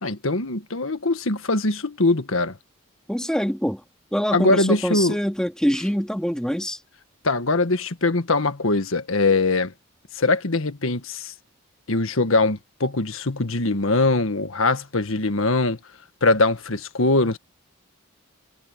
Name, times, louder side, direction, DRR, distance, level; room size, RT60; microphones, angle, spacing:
voice 1, 0.0-2.6 4.3-5.2 7.2-9.7 10.1-11.3 11.9-15.8 16.2-17.4, left 2 dB, 80° left, 1.6 m, -22 dB
voice 2, 3.1-3.8 4.1-6.8, equal, 5° left, 2.0 m, -24 dB
head